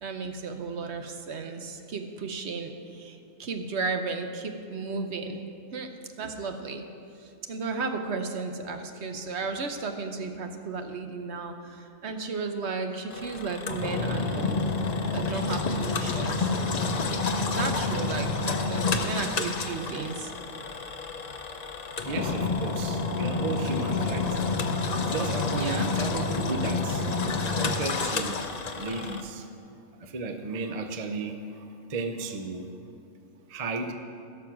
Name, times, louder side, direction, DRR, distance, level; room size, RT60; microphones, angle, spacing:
voice 1, 0.0-5.4 5.7-5.9 6.2-6.8 7.2-14.6 15.1-16.5 17.5-20.3 25.5-25.9, right 4 dB, 60° right, 6 dB, 1.0 m, -34 dB
Engine, 13.1-29.2, left 3 dB, 45° left, 0.6 m, -29 dB
voice 2, 22.0-24.4 25.0-27.1 27.5-28.4 28.7-29.5 30.0-32.7 33.5-33.9, right 3 dB, 40° right, 6 dB, 0.6 m, -34 dB
16.5 x 6.1 x 5.9 m, 2.5 s
omnidirectional pair, 1.4 m